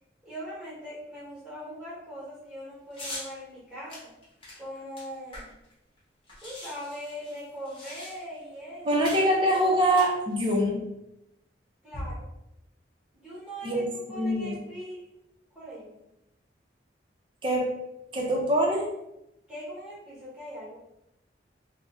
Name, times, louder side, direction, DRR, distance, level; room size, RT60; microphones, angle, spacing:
voice 1, 0.2-4.1 4.5-5.5 6.4-8.9 11.8-12.3 13.1-15.0 15.5-16.0 19.5-20.8, equal, 5° right, -8 dB, 1.1 m, -41 dB
sound 1, 2.9-3.3 3.9-5.7 6.0-6.1 6.3-8.4 9.0-9.3 9.8-10.6, left 1 dB, 30° left, 1.0 m, -42 dB
voice 2, 8.8-10.9 13.6-14.6 17.4-17.7 18.1-18.9, right 1 dB, 30° right, -1 dB, 0.5 m, -24 dB
2.6 x 2.1 x 3.5 m, 0.87 s
head